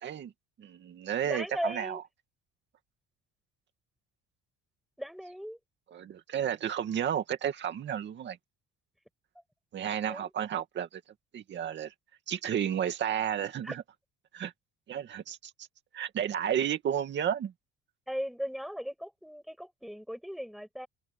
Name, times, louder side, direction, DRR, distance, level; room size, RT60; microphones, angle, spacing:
voice 1, 0.0-0.3 0.6-2.0 5.9-8.4 9.7-11.0 11.3-11.9 12.3-13.8 14.3-14.5 14.9-15.5 15.9-17.5, right 9 dB, 40° right, 2.4 m, -32 dB
voice 2, 1.2-2.0 5.0-5.6 10.1-10.3 13.6-13.7 18.1-20.9, equal, ahead, 6.8 m, -37 dB
cardioid pair, 175°, 29 cm